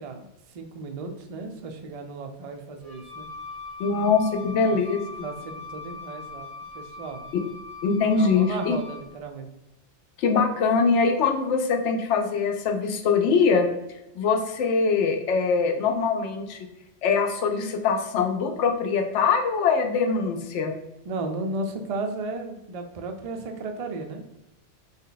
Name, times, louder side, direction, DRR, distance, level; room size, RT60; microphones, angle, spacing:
voice 1, 0.0-3.3 4.6-4.8 5.2-6.5 6.7-7.6 8.1-9.5 21.1-24.2, right 3 dB, 70° right, 5 dB, 0.3 m, -34 dB
Wind instrument woodwind instrument, 2.8-9.1, left 3 dB, 35° right, 0.6 m, -41 dB
voice 2, 3.8-5.0 7.8-8.8 10.2-13.7 14.2-16.6 17.0-20.7, left 5 dB, 80° left, 4 dB, 0.9 m, -23 dB
3.4 x 2.2 x 3.8 m, 0.92 s
omnidirectional pair, 1.2 m